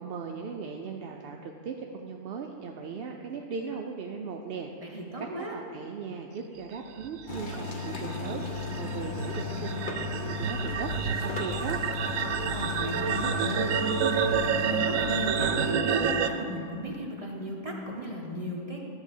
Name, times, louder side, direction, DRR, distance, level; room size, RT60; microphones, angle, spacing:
voice 1, 0.0-11.8, right 5 dB, 60° right, 2 dB, 0.6 m, -38 dB
voice 2, 4.8-5.6 12.3-18.9, equal, 30° right, -1 dB, 1.0 m, -37 dB
sound 1, 7.0-16.3, right 7 dB, 80° right, 1.0 m, -29 dB
sound 2, 7.3-15.7, left 4 dB, 40° left, 1.0 m, -35 dB
12.0 x 4.1 x 7.2 m, 2.4 s
omnidirectional pair, 1.4 m